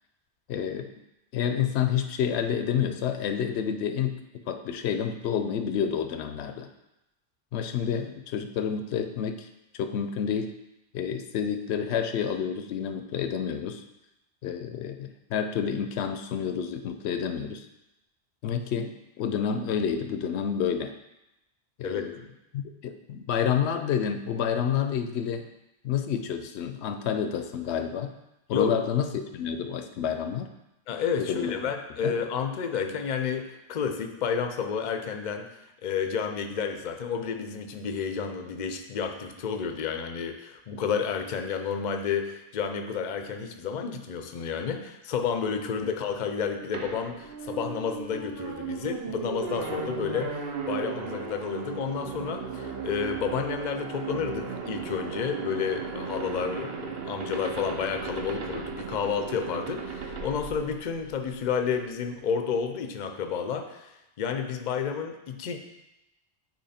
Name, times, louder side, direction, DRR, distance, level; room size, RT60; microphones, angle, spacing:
voice 1, 0.5-0.9 1.3-4.2 4.5-6.7 7.5-9.5 9.7-10.5 10.9-13.8 14.4-17.7 18.4-20.9 21.8-22.2 22.5-25.5 25.8-28.1 28.5-30.5 31.2-31.5 32.0-32.1, left 8 dB, 80° left, 8 dB, 0.8 m, -29 dB
voice 2, 30.9-35.5 35.8-63.9 64.2-65.6, left 6 dB, 50° left, 6 dB, 0.6 m, -31 dB
sound 1, 46.7-61.5, right 5 dB, 65° right, 0.9 m, -36 dB
8.6 x 3.0 x 4.2 m, 0.93 s
omnidirectional pair, 1.1 m